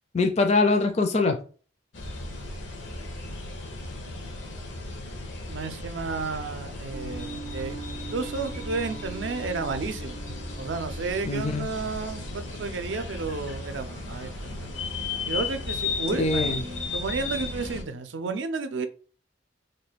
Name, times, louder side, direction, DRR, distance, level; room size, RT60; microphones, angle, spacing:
voice 1, 0.1-1.4 11.2-11.7 16.2-16.6, left 3 dB, 35° left, 0.4 m, -23 dB
sound 1, 1.9-17.8, left 3 dB, 85° left, 0.9 m, -35 dB
voice 2, 5.5-10.2 10.6-14.7 15.3-16.5 16.9-18.9, right 4 dB, 80° right, 0.5 m, -32 dB
sound 2, 6.9-17.9, right 3 dB, 25° right, 0.4 m, -44 dB
3.2 x 2.2 x 4.0 m
head